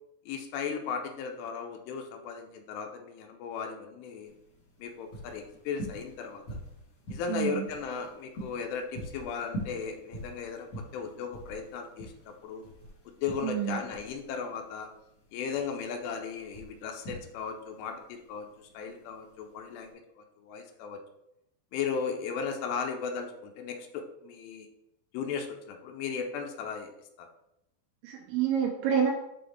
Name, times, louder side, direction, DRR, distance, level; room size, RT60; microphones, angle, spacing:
voice 1, 0.3-4.3 4.8-6.6 7.1-10.7 10.9-12.6 13.1-14.9 15.3-21.0 21.7-24.7 25.1-26.9 27.2-27.3, left 6 dB, 80° left, 4 dB, 2.5 m, -36 dB
sound 1, 4.3-19.9, right 1 dB, 60° left, 1.7 m, -44 dB
voice 2, 7.3-7.7 13.4-13.8 28.0-29.1, right 8 dB, 80° right, 0 dB, 2.9 m, -28 dB
7.6 x 4.0 x 3.4 m, 0.83 s
omnidirectional pair, 5.6 m